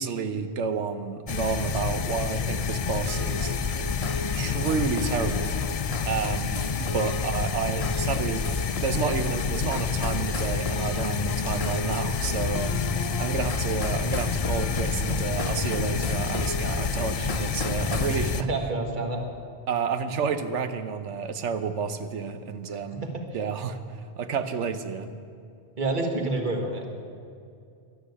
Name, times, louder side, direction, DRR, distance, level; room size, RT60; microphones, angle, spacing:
voice 1, 0.0-3.5 4.3-5.5 6.0-8.5 8.8-12.7 13.2-18.5 19.7-23.1 23.3-23.8 24.2-25.1, right 6 dB, 85° right, 9 dB, 1.2 m, -30 dB
sound 1, 1.3-18.4, left 6 dB, 50° left, 0.4 m, -29 dB
sound 2, 3.1-18.2, left 2 dB, 35° left, 1.0 m, -35 dB
voice 2, 18.4-19.2 22.7-23.2 25.8-26.9, right 2 dB, 45° right, 3 dB, 1.8 m, -29 dB
12.0 x 11.5 x 8.4 m, 2.4 s
omnidirectional pair, 1.2 m